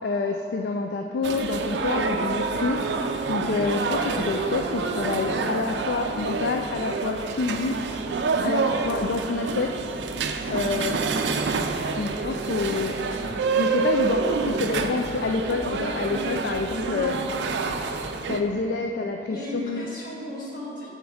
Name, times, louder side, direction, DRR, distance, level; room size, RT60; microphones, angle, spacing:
voice 1, 0.0-8.0 8.4-9.8 10.5-11.0 12.0-13.0 13.6-17.2 18.3-19.8, left 3 dB, 65° left, 4 dB, 0.3 m, -28 dB
sound 1, 1.2-18.4, right 4 dB, 80° right, 0.4 m, -27 dB
voice 2, 19.3-20.9, equal, 50° left, -6 dB, 1.6 m, -36 dB
7.2 x 4.0 x 4.8 m, 2.9 s
head